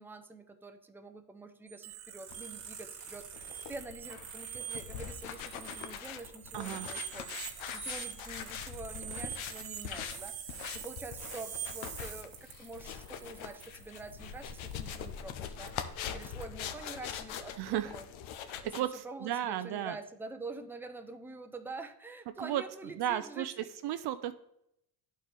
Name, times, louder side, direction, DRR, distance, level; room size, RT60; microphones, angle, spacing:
voice 1, 0.0-7.4 7.7-15.8 16.1-18.1 18.6-18.7 19.0-23.7, right 2 dB, 5° right, 6 dB, 0.6 m, -46 dB
sound 1, 1.7-2.8 3.1-5.9 6.4-12.0, right 8 dB, 75° right, 1.7 m, -45 dB
sound 2, 1.8-15.2 15.7-15.8 16.2-16.4, right 7 dB, 90° right, 1.4 m, -49 dB
sound 3, 2.3-18.8, left 8 dB, 75° left, 0.8 m, -43 dB
voice 2, 6.5-6.9 17.6-17.9 18.5-20.0 22.4-22.6 23.0-23.5 23.8-24.3, right 12 dB, 55° right, 11 dB, 0.5 m, -34 dB
11.0 x 4.4 x 3.3 m, 0.80 s
cardioid pair, 85°, 47 cm